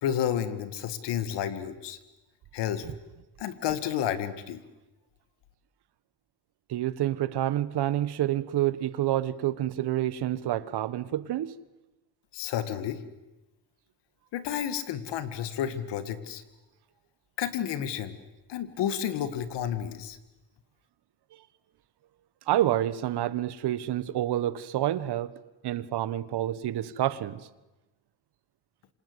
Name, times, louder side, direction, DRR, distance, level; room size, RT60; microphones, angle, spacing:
voice 1, 0.0-2.0 2.5-2.8 3.4-4.6 12.3-13.0 14.3-16.4 17.4-18.2 18.5-20.2, left 9 dB, 90° left, 2.1 m, -31 dB
voice 2, 6.7-11.6 22.5-25.3 25.6-27.5, right 13 dB, 70° right, 1.4 m, -28 dB
27.5 x 26.0 x 8.1 m
cardioid pair, 105°, 41 cm